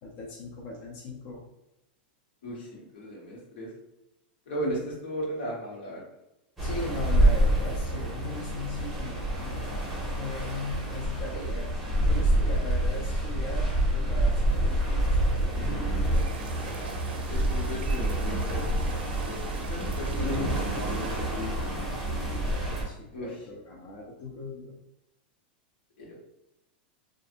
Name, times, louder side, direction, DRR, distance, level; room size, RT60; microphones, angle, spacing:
voice 1, 0.0-1.4 4.7-4.8 6.6-9.8 10.2-16.3 22.8-24.8, left 2 dB, 50° left, -3 dB, 0.6 m, -39 dB
voice 2, 2.4-3.7 4.5-6.0 17.1-21.5 23.1-23.4 26.0-26.1, equal, 80° left, -3 dB, 1.2 m, -36 dB
sound 1, 6.6-22.8, right 1 dB, 5° right, 0.9 m, -27 dB
sound 2, 16.1-21.5, right 5 dB, 90° right, 0.4 m, -45 dB
2.6 x 2.5 x 2.5 m, 0.92 s
supercardioid pair, 140°, 6 cm